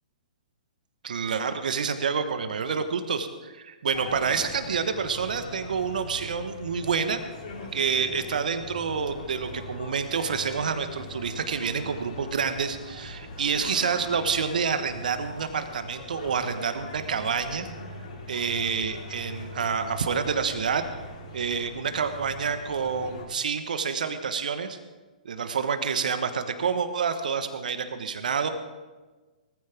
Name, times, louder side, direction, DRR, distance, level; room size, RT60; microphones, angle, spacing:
voice 1, 1.0-7.2 7.7-17.7 18.3-20.8 21.3-24.8 25.2-28.5, right 6 dB, 70° right, 9 dB, 1.3 m, -28 dB
sound 1, 3.9-23.2, left 2 dB, 65° left, 3.9 m, -41 dB
18.5 x 15.0 x 3.5 m, 1.3 s
hypercardioid pair, 120°, 5 cm